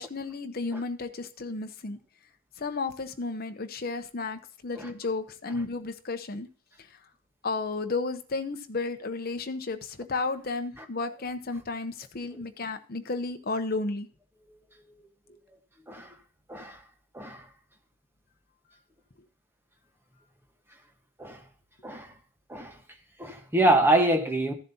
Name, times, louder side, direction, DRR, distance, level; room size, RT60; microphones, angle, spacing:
voice 1, 0.0-2.0 2.6-6.5 6.9-7.0 7.4-14.1, left 3 dB, 45° left, 0.8 m, -33 dB
voice 2, 23.2-24.5, right 1 dB, 10° right, 1.2 m, -25 dB
14.5 x 7.4 x 2.8 m
head